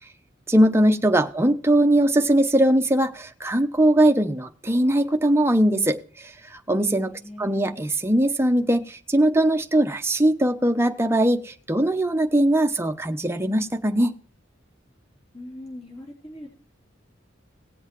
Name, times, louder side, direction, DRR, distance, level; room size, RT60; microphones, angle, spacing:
voice 1, 0.5-7.1 7.4-14.1, right 1 dB, 15° right, 5 dB, 0.8 m, -20 dB
voice 2, 7.1-7.8 15.3-16.5, left 1 dB, 35° left, -2 dB, 3.6 m, -41 dB
18.0 x 7.9 x 3.1 m, 0.41 s
head